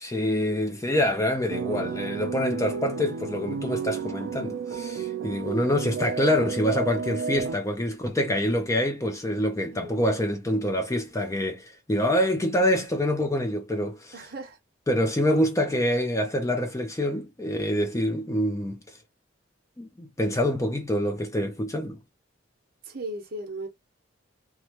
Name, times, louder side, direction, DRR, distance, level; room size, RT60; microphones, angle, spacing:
voice 1, 0.0-14.1 14.9-18.8 19.8-22.0, left 1 dB, 15° left, 0.4 m, -26 dB
sound 1, 1.5-7.6, right 6 dB, 75° right, 0.3 m, -32 dB
voice 2, 9.7-10.1 14.1-14.6 22.8-23.7, right 1 dB, 45° right, 0.9 m, -37 dB
3.1 x 2.3 x 2.9 m
head